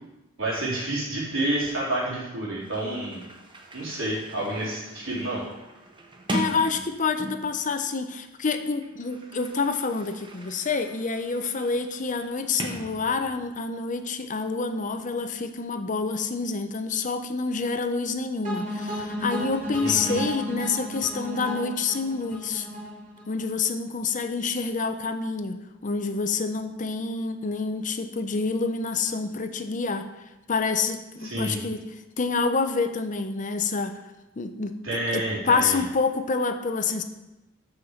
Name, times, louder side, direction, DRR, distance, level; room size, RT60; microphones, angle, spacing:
voice 1, 0.4-3.2 3.7-5.4 19.8-20.2 31.2-31.6 34.8-35.8, right 1 dB, 85° right, -6 dB, 3.5 m, -29 dB
Sliding door, 2.3-2.4 2.6-7.7 8.6-13.6, right 1 dB, 25° right, 0.9 m, -39 dB
voice 2, 6.3-22.7 23.3-25.6 25.8-30.1 30.5-31.9 32.2-33.9 34.4-34.8 35.1-37.0, left 4 dB, 40° left, 8 dB, 0.6 m, -27 dB
sound 1, 18.4-23.5, equal, 40° right, 3.5 m, -33 dB
6.5 x 5.8 x 7.0 m, 1.0 s
head